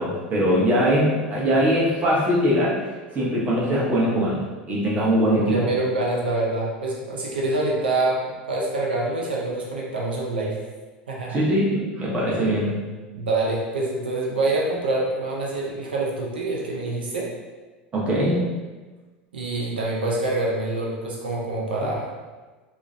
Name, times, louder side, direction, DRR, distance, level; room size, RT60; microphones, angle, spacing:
voice 1, 0.0-2.8 3.1-5.5 11.3-12.7 17.9-18.5, equal, 30° right, -6 dB, 0.8 m, -21 dB
voice 2, 5.3-10.6 11.1-11.4 13.1-17.3 19.3-22.1, right 2 dB, 90° right, -3 dB, 0.4 m, -26 dB
2.4 x 2.1 x 2.4 m, 1.3 s
hypercardioid pair, 85°, 5 cm